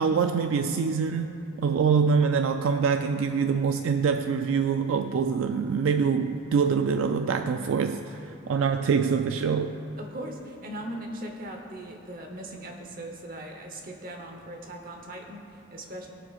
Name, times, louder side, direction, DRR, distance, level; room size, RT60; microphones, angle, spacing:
voice 1, 0.0-9.7, right 6 dB, 70° right, 7 dB, 0.3 m, -25 dB
voice 2, 10.0-16.1, right 1 dB, 40° right, 2 dB, 0.9 m, -39 dB
21.5 x 7.2 x 2.4 m, 2.7 s
head